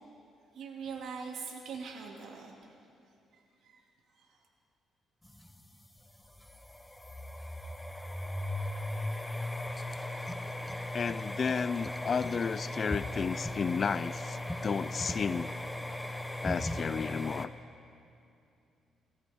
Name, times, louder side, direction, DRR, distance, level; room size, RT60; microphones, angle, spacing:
voice 1, 0.5-2.5 3.3-3.8 4.1-4.4, right 5 dB, 75° right, 0 dB, 2.4 m, -42 dB
sound 1, 5.2-17.5, left 1 dB, 10° left, 0.8 m, -37 dB
voice 2, 10.9-15.5 16.4-17.5, left 6 dB, 45° left, 18 dB, 0.3 m, -32 dB
22.0 x 14.0 x 3.5 m, 2.6 s
cardioid pair, 90°, 0 cm